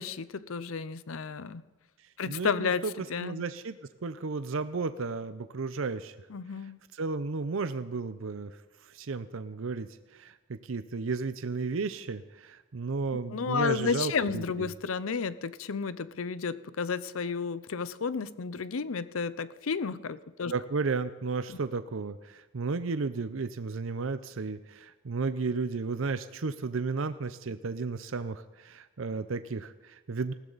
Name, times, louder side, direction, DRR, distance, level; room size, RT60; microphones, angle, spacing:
voice 1, 0.0-1.6 2.2-2.8 3.1-3.4 6.3-6.8 13.3-20.5 21.5-21.6, left 5 dB, 85° left, 16 dB, 0.6 m, -32 dB
voice 2, 2.3-2.9 3.2-3.8 4.0-6.1 6.9-8.5 8.9-9.9 10.1-14.7 20.5-30.3, right 4 dB, 80° right, 11 dB, 0.6 m, -33 dB
20.0 x 16.0 x 4.1 m, 1.2 s
head